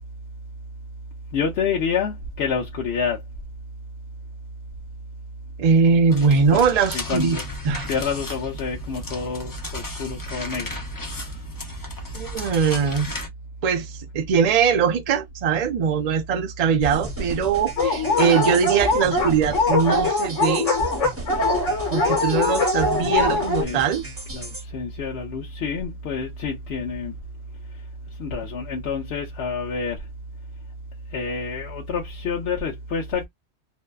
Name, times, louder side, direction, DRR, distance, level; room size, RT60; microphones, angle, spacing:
voice 1, 1.3-3.2 6.5-6.6 6.9-7.4 7.9-11.4 23.6-23.8 24.3-27.1 28.2-30.1 31.1-33.3, left 5 dB, 65° left, 0.8 m, -28 dB
voice 2, 5.6-7.4 7.6-7.9 12.1-13.1 13.6-20.7 21.9-24.0, right 6 dB, 65° right, 0.3 m, -21 dB
sound 1, 6.1-13.3, left 1 dB, 30° left, 0.4 m, -34 dB
sound 2, 16.8-24.6, right 2 dB, 15° right, 0.7 m, -36 dB
Dog, 17.8-23.6, left 3 dB, 85° left, 1.1 m, -22 dB
2.5 x 2.2 x 2.3 m
omnidirectional pair, 1.2 m